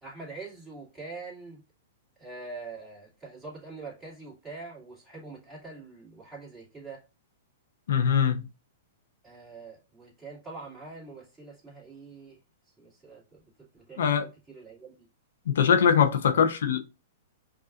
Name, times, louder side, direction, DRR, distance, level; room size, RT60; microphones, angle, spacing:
voice 1, 0.0-1.6 2.2-7.0 9.2-12.4 12.8-13.4 13.7-15.1 16.4-16.5, right 3 dB, 5° right, 2.1 m, -44 dB
voice 2, 7.9-8.4 14.0-14.2 15.5-16.8, left 7 dB, 75° left, 0.6 m, -22 dB
5.0 x 2.4 x 2.4 m
hypercardioid pair, 130°, 0 cm